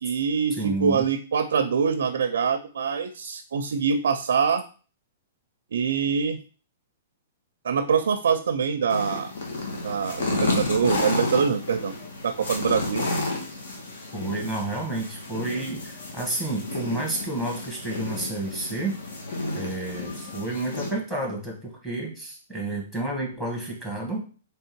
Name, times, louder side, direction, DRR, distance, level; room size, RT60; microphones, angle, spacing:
voice 1, 0.0-4.6 5.7-6.4 7.6-9.3 9.8-11.9 12.2-13.1, right 6 dB, 85° right, 7 dB, 0.5 m, -24 dB
voice 2, 0.6-1.0 14.1-19.0 19.5-24.2, right 2 dB, 5° left, -2 dB, 1.1 m, -30 dB
sound 1, 8.9-20.9, left 2 dB, 70° left, 1.3 m, -31 dB
3.7 x 3.3 x 4.4 m, 0.38 s
hypercardioid pair, 175°, 0 cm